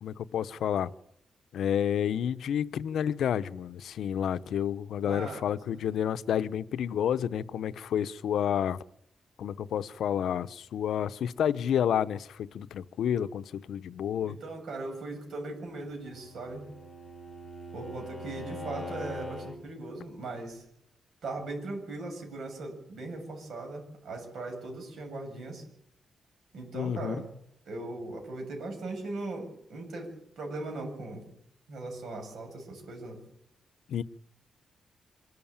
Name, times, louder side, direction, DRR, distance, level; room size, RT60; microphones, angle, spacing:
voice 1, 0.0-0.9 1.5-8.8 9.4-14.4 26.7-27.2 33.9-34.0, left 9 dB, 90° left, 0.7 m, -30 dB
voice 2, 5.0-5.4 5.7-5.8 14.2-16.6 17.7-20.6 21.2-25.6 26.5-27.2 27.7-31.2 31.7-33.2, right 2 dB, 65° right, 7.8 m, -39 dB
Bowed string instrument, 15.9-19.6, left 1 dB, 5° right, 3.7 m, -42 dB
25.5 x 13.0 x 8.9 m
wide cardioid pair, 160°, 0 cm